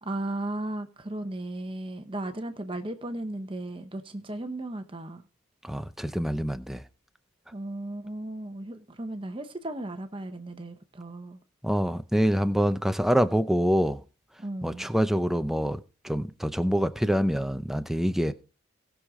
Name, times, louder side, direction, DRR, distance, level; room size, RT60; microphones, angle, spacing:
voice 1, 0.0-5.2 7.5-11.4 14.4-14.9, right 1 dB, 25° right, 1.0 m, -35 dB
voice 2, 5.6-6.8 11.6-14.0 14.6-15.8 16.0-18.3, equal, ahead, 0.6 m, -25 dB
19.0 x 6.5 x 3.7 m
head